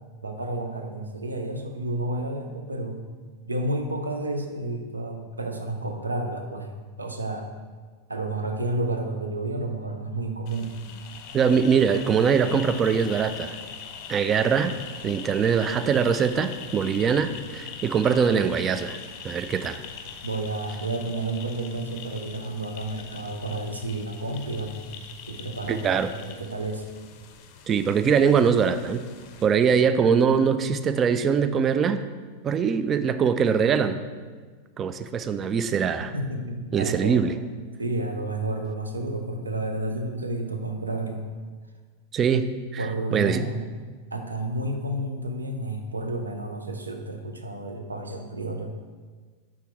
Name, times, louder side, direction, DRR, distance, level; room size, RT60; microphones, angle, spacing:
voice 1, 0.2-3.0 3.4-6.7 7.0-7.5 8.1-10.8 17.7-17.8 20.2-24.8 25.3-26.9 36.1-37.2 37.8-41.3 42.8-43.7 44.1-48.7, right 2 dB, 80° right, 5 dB, 0.6 m, -31 dB
sound 1, 10.5-29.5, left 7 dB, 45° left, 0.5 m, -42 dB
voice 2, 11.3-13.6 14.1-14.8 15.0-19.0 19.2-19.8 25.7-26.1 27.7-29.0 29.4-32.0 32.4-34.0 34.8-36.1 36.7-37.3 42.1-42.9 43.1-43.4, right 6 dB, 25° right, 11 dB, 0.3 m, -22 dB
5.8 x 3.7 x 4.6 m, 1.5 s
figure-of-eight pair, 90°, 0 cm